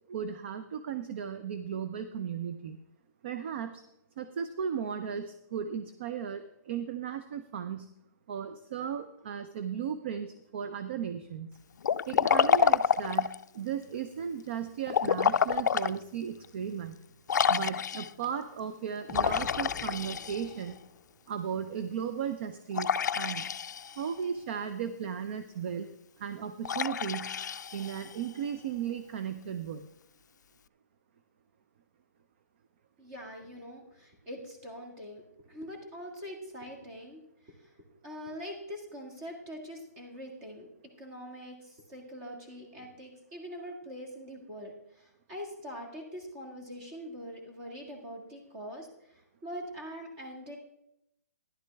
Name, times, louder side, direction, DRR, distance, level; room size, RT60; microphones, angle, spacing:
voice 1, 0.1-2.8 3.2-3.8 4.2-7.9 8.3-11.5 12.1-17.0 17.5-20.7 21.3-23.5 24.0-25.9 26.2-27.4 27.7-29.9, right 8 dB, 40° right, 10 dB, 0.5 m, -36 dB
Liquid, 11.8-13.4 14.9-16.0 16.4-16.5 17.3-18.3 19.1-20.7 22.7-24.1 26.6-28.3, left 7 dB, 85° left, 0.3 m, -28 dB
Explosion, 19.1-21.2, left 7 dB, 15° left, 0.7 m, -45 dB
voice 2, 33.0-37.7 38.0-40.7 41.0-50.6, equal, 25° right, 1 dB, 1.9 m, -43 dB
12.0 x 11.0 x 3.4 m, 0.82 s
hypercardioid pair, 165°, 9 cm